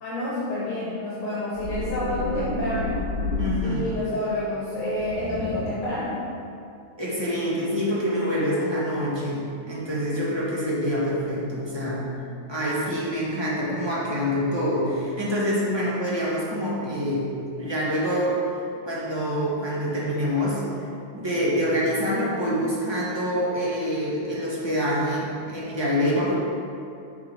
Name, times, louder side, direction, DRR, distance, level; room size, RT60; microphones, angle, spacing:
voice 1, 0.0-3.0 3.6-6.2, left 1 dB, 85° left, -8 dB, 2.2 m, -28 dB
sound 1, 1.6-4.0 5.0-5.9, left 2 dB, 65° right, 2.0 m, -30 dB
voice 2, 3.4-3.8 7.0-12.0 12.5-18.4 18.8-20.7 21.1-26.4, equal, 15° right, -7 dB, 0.9 m, -26 dB
7.2 x 3.8 x 4.7 m, 2.6 s
omnidirectional pair, 2.4 m